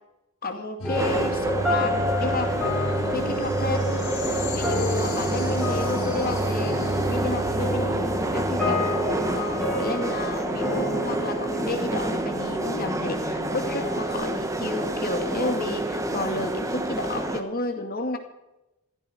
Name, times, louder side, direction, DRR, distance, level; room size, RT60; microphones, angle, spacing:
voice 1, 0.4-2.5 3.1-3.9 4.5-6.8 7.1-8.8 9.3-18.2, left 2 dB, 40° left, 5 dB, 2.1 m, -31 dB
sound 1, 0.8-9.9, right 1 dB, 75° left, 3.4 m, -31 dB
sound 2, 0.8-14.1, left 1 dB, ahead, 6.6 m, -30 dB
sound 3, 0.9-17.4, right 1 dB, 15° right, 1.1 m, -28 dB
16.5 x 15.0 x 4.6 m, 0.95 s
head